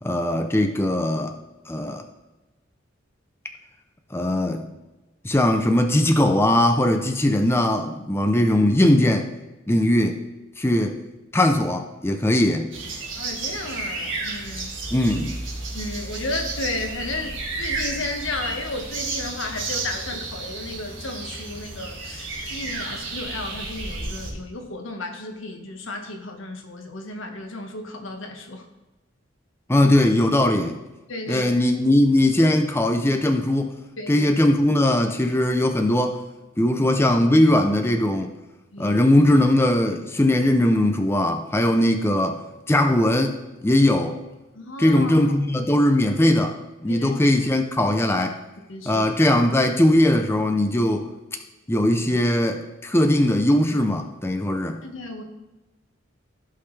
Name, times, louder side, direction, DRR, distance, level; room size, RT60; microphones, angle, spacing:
voice 1, 0.0-1.3 1.7-2.0 4.1-4.7 5.2-9.3 9.7-10.2 10.6-11.0 11.3-12.7 14.9-15.4 29.7-30.8 31.3-33.7 34.1-36.2 36.6-38.3 38.8-43.4 43.6-44.2 44.8-48.4 48.9-51.1 51.7-54.8, left 1 dB, 15° left, 5 dB, 0.6 m, -20 dB
sound 1, 12.7-24.3, right 3 dB, 70° right, 2.0 m, -32 dB
voice 2, 13.2-14.9 15.7-28.6 31.1-31.5 34.0-34.3 38.7-39.0 44.5-45.2 46.9-47.1 48.7-49.1 54.8-55.2, left 2 dB, 80° left, 3 dB, 1.4 m, -33 dB
15.0 x 5.7 x 3.3 m, 1.1 s
head